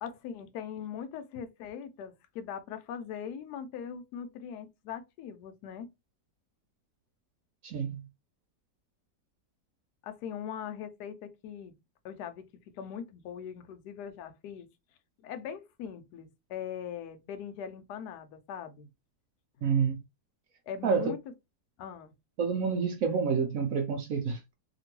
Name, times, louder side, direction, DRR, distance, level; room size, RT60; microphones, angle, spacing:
voice 1, 0.0-5.9 10.0-11.7 12.0-12.5 12.7-14.7 15.2-18.9 20.7-21.2 21.8-22.1, left 8 dB, 75° left, 1.1 m, -41 dB
voice 2, 7.6-8.0 19.6-20.0 20.8-21.1 22.4-24.5, right 6 dB, 70° right, 0.8 m, -28 dB
2.9 x 2.5 x 2.9 m
omnidirectional pair, 1.9 m